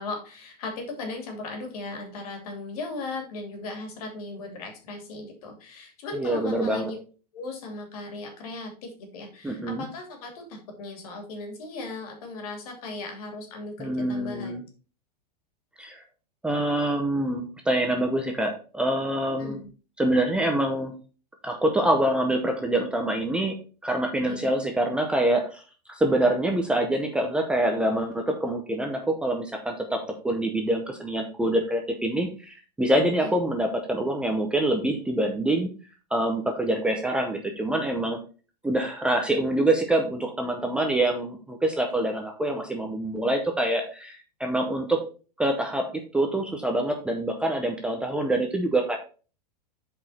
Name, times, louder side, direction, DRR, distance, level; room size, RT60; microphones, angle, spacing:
voice 1, 0.0-7.0 7.3-14.6 19.4-19.7 24.2-24.5 33.2-33.3, left 3 dB, 60° left, 4 dB, 2.8 m, -37 dB
voice 2, 6.1-6.9 9.4-9.8 13.8-14.6 15.8-16.0 16.4-19.6 20.0-20.9 21.4-23.5 23.8-25.6 25.9-35.7 36.1-38.2 38.6-45.0 45.4-49.0, right 1 dB, 5° right, 3 dB, 0.7 m, -25 dB
7.4 x 5.0 x 4.2 m, 0.36 s
supercardioid pair, 160°, 21 cm